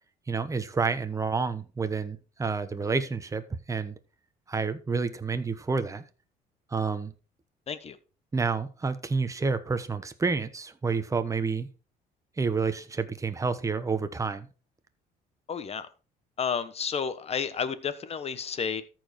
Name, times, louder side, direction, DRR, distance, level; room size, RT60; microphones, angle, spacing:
voice 1, 0.3-4.0 4.5-6.0 6.7-7.1 8.3-11.7 12.4-14.5, right 4 dB, 20° right, 10 dB, 1.0 m, -29 dB
voice 2, 15.5-15.9 16.4-18.8, left 6 dB, 35° left, 12 dB, 1.1 m, -31 dB
13.5 x 4.6 x 4.4 m, 0.35 s
cardioid pair, 110°, 17 cm